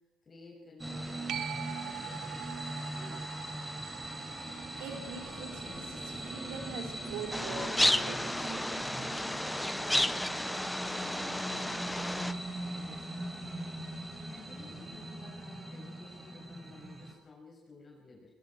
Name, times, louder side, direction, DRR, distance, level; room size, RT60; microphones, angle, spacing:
voice 1, 0.0-3.3 10.9-18.3, left 3 dB, 35° left, -2 dB, 7.6 m, -54 dB
sound 1, 0.8-17.1, right 1 dB, 15° right, 5.4 m, -40 dB
sound 2, 1.3-8.4 14.0-14.1, right 11 dB, 70° right, 1.2 m, -46 dB
voice 2, 4.8-9.5, right 5 dB, 85° right, 3 dB, 4.8 m, -44 dB
sound 3, 7.3-12.3, left 1 dB, 5° left, 1.0 m, -32 dB
21.0 x 20.5 x 6.3 m, 1.1 s
supercardioid pair, 75°, 0 cm